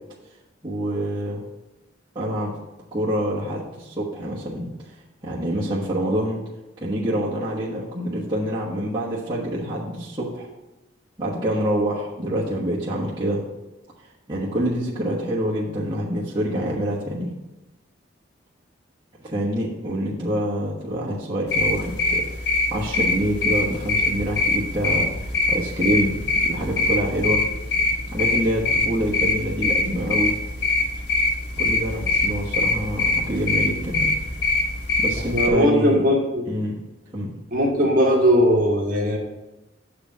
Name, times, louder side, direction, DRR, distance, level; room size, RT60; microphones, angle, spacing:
voice 1, 0.6-1.4 2.1-2.5 2.9-4.7 5.2-6.4 6.8-10.5 11.2-13.4 14.3-17.3 19.2-27.4 28.1-30.3 31.6-34.1 35.0-36.0 36.5-36.8 37.1-37.3, equal, 25° right, -8 dB, 1.3 m, -26 dB
sound 1, 21.5-35.5, left 3 dB, 55° left, 1.2 m, -23 dB
voice 2, 35.3-36.5 37.5-39.2, equal, 45° right, -1 dB, 1.6 m, -19 dB
7.0 x 5.0 x 6.1 m, 1.0 s
head